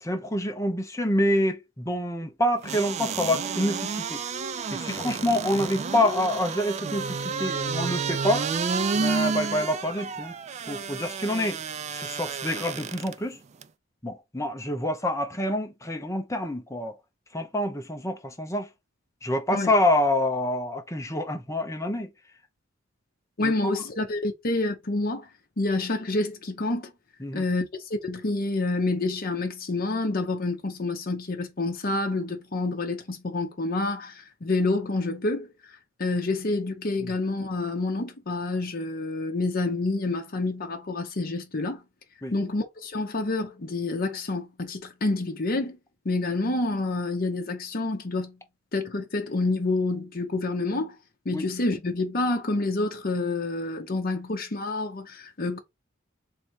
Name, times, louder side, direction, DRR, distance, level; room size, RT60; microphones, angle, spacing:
voice 1, 0.0-4.2 4.7-8.5 8.9-10.3 10.7-11.6 11.9-13.4 14.0-16.9 17.3-18.7 19.2-22.1 23.4-23.7 27.2-27.4 42.2-42.3 51.3-51.4, left 1 dB, 15° left, 0.7 m, -27 dB
sound 1, 2.6-13.1 13.6-13.7, right 5 dB, 35° right, 0.3 m, -30 dB
voice 2, 23.4-25.3 25.6-26.9 27.3-35.5 36.0-41.8 42.3-45.8 46.0-48.4 48.7-50.9 51.2-55.6, left 2 dB, 45° left, 0.8 m, -28 dB
3.3 x 2.7 x 4.4 m
head